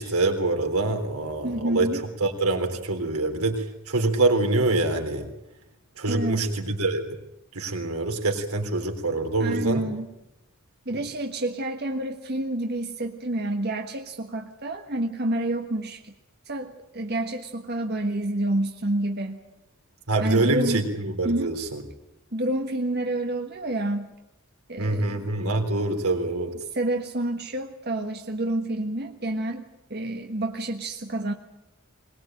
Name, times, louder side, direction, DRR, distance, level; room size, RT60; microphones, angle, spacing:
voice 1, 0.0-1.9 2.2-5.3 6.0-7.1 7.5-9.8 10.9-11.0 20.1-21.8 24.8-26.5, right 2 dB, 85° right, 4 dB, 3.6 m, -25 dB
voice 2, 1.4-2.0 6.1-6.4 9.4-10.1 10.8-16.1 16.5-19.4 20.2-20.8 21.2-21.5 22.3-24.1 24.7-25.2 26.7-29.6 29.9-31.3, right 1 dB, 50° right, 3 dB, 1.4 m, -28 dB
21.5 x 20.5 x 8.9 m, 0.90 s
head